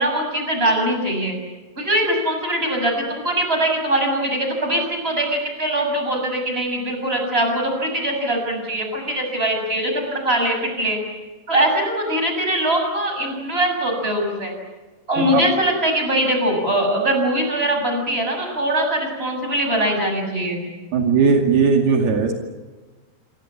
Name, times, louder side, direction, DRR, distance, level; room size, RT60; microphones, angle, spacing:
voice 1, 0.0-1.4 1.8-11.0 11.5-14.5 15.1-20.7, right 1 dB, 15° right, 3 dB, 7.0 m, -22 dB
voice 2, 20.9-22.3, right 5 dB, 70° right, 3 dB, 4.3 m, -17 dB
27.5 x 25.5 x 7.5 m, 1.2 s
omnidirectional pair, 4.7 m